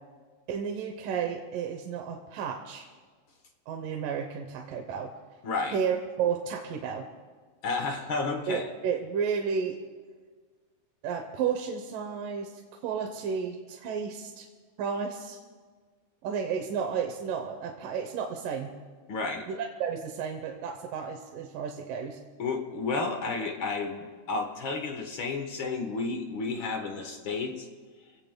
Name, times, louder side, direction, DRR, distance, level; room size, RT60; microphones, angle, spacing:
voice 1, 0.5-2.9 3.7-5.1 5.7-7.1 8.5-9.8 11.0-14.5 14.8-15.4 16.2-18.7 19.5-22.2, right 6 dB, 85° right, 3 dB, 2.5 m, -32 dB
voice 2, 5.4-5.7 7.6-8.7 19.1-19.5 22.4-27.7, left 3 dB, 60° left, 4 dB, 1.3 m, -31 dB
26.0 x 16.5 x 2.2 m, 1.5 s
omnidirectional pair, 3.7 m